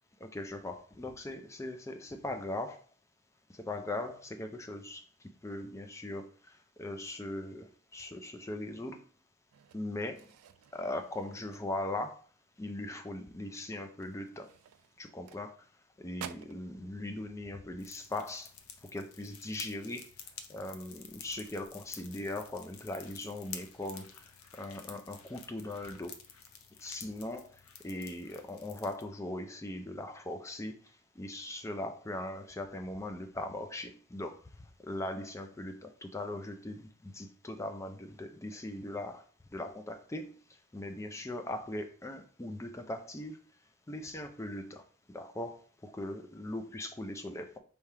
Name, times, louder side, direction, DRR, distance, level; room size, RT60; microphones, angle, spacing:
voice 1, 0.2-2.8 3.5-5.0 5.4-9.0 9.7-10.3 10.7-12.2 12.6-14.5 15.0-15.7 16.0-18.5 18.9-20.1 20.5-24.2 24.5-26.2 26.8-30.7 31.2-39.3 39.5-43.4 43.9-47.6, left 1 dB, 15° left, 6 dB, 0.4 m, -40 dB
sound 1, 9.5-12.1 12.5-12.8 13.2-13.3 13.9-15.8 16.1-16.7, right 9 dB, 80° right, 0.3 m, -51 dB
sound 2, 17.8-29.0, left 7 dB, 75° left, 0.6 m, -51 dB
3.4 x 2.8 x 4.6 m, 0.42 s
head